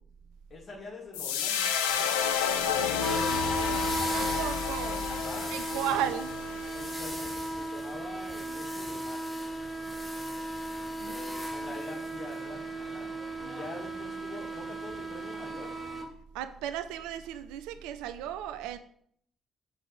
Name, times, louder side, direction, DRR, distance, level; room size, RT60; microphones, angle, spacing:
voice 1, 0.5-2.2 2.6-3.5 5.1-6.0 6.7-9.2 11.0-13.1 13.4-15.7, left 2 dB, 45° left, -2 dB, 2.3 m, -45 dB
sound 1, 1.1-7.5, left 8 dB, 75° left, 0.5 m, -31 dB
sound 2, 3.0-16.0, right 1 dB, ahead, 2.2 m, -35 dB
voice 2, 4.1-5.0 5.5-6.3 11.0-11.2 11.5-11.7 16.3-18.8, right 10 dB, 70° right, 10 dB, 0.5 m, -35 dB
6.3 x 5.5 x 4.0 m, 0.65 s
figure-of-eight pair, 40°, 0 cm